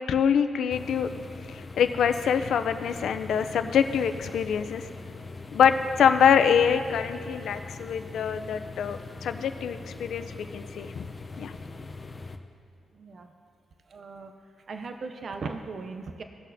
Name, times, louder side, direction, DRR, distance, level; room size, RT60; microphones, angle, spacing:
voice 1, 0.1-1.1 1.5-4.9 5.5-11.1 11.4-11.5, left 7 dB, 75° left, 9 dB, 0.5 m, -25 dB
sound 1, 0.7-12.4, left 3 dB, 30° left, 0.6 m, -41 dB
voice 2, 12.9-13.3 13.9-14.3 14.7-16.2, right 4 dB, 55° right, 6 dB, 0.5 m, -37 dB
17.5 x 6.3 x 2.7 m, 2.5 s
cardioid pair, 100°, 0 cm